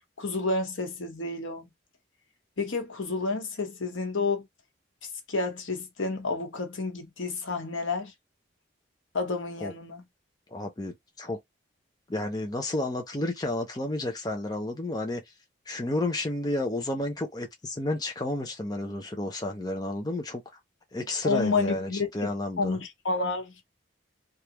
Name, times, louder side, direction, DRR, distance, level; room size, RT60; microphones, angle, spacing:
voice 1, 0.2-1.7 2.6-4.4 5.3-8.1 9.1-10.0 21.2-22.1 22.6-23.5, left 3 dB, 90° left, 1.0 m, -30 dB
voice 2, 10.5-11.4 12.1-15.2 15.7-20.4 20.9-22.8, left 1 dB, 20° left, 0.6 m, -31 dB
3.4 x 2.5 x 2.9 m
head